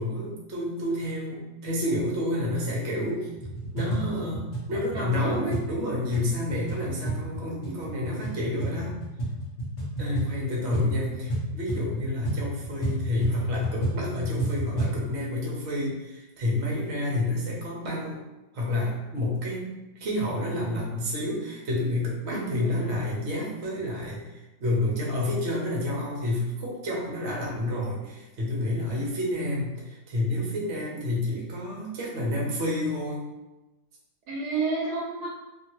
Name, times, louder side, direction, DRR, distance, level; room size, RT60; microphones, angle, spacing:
voice 1, 0.0-3.3 3.7-9.0 10.0-18.2 18.5-33.3, left 1 dB, 50° right, -3 dB, 0.9 m, -29 dB
sound 1, 3.3-15.0, right 1 dB, 45° left, 0.6 m, -31 dB
voice 2, 4.7-5.4 22.3-22.9 34.3-35.3, right 3 dB, 70° right, -4 dB, 1.1 m, -31 dB
2.8 x 2.7 x 2.8 m, 1.1 s
omnidirectional pair, 1.9 m